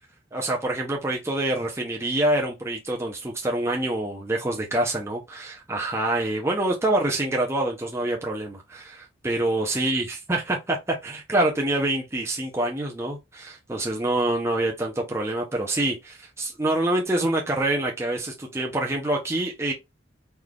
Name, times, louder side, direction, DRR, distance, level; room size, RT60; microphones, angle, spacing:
voice 1, 0.3-10.0 10.3-19.7, right 1 dB, 15° right, 0.6 m, -26 dB
3.9 x 3.2 x 2.3 m
head